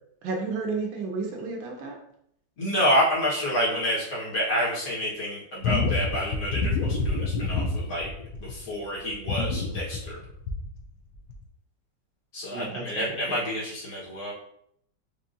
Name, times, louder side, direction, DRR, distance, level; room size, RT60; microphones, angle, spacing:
voice 1, 0.2-2.0 12.5-13.4, right 4 dB, 90° right, 1 dB, 1.6 m, -32 dB
voice 2, 2.6-8.1 8.4-10.2 12.3-14.3, equal, 55° left, -6 dB, 1.8 m, -28 dB
sound 1, 5.6-8.7 9.1-10.8 11.3-11.4, left 3 dB, 85° left, 1.3 m, -28 dB
5.0 x 2.7 x 2.6 m, 0.72 s
omnidirectional pair, 2.0 m